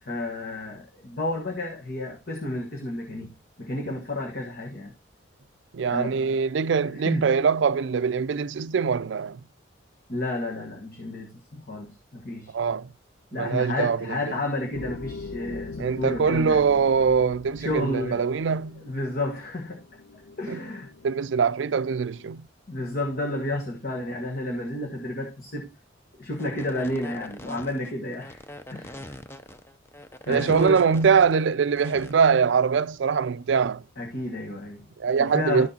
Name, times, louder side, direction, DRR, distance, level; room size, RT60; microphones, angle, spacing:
voice 1, 0.0-4.9 5.9-6.3 7.0-7.4 10.1-12.6 13.3-16.6 17.6-18.2 18.8-19.8 20.4-20.9 22.7-25.7 26.1-28.4 28.7-29.1 30.3-30.9 34.0-34.9 35.2-35.7, left 1 dB, 50° left, 1.4 m, -31 dB
voice 2, 5.7-9.4 12.5-12.9 13.3-14.3 15.8-18.8 20.5-20.6 21.0-22.5 30.3-33.8 35.0-35.7, right 6 dB, 70° right, 0.4 m, -23 dB
sound 1, 14.7-22.3, left 3 dB, 80° left, 0.6 m, -42 dB
sound 2, 26.3-32.1, left 1 dB, 15° left, 0.6 m, -42 dB
12.5 x 6.1 x 2.8 m
head